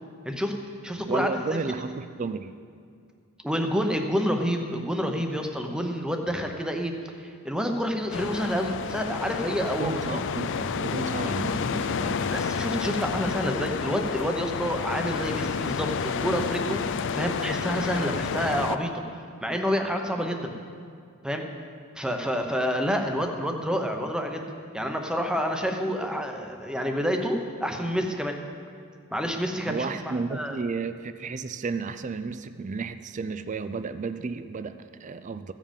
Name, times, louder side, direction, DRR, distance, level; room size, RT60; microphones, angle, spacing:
voice 1, 0.2-0.6 0.8-1.6 3.4-6.9 7.2-10.2 12.3-18.9 19.4-20.5 21.2-21.5 22.0-24.4 24.7-28.4 29.1-30.6, equal, 5° right, 4 dB, 0.8 m, -28 dB
voice 2, 1.0-2.5 9.8-12.3 29.7-35.5, right 4 dB, 35° right, 11 dB, 0.4 m, -32 dB
sound 1, 8.1-18.8, left 6 dB, 55° left, 0.4 m, -30 dB
15.0 x 7.5 x 5.2 m, 2.3 s
head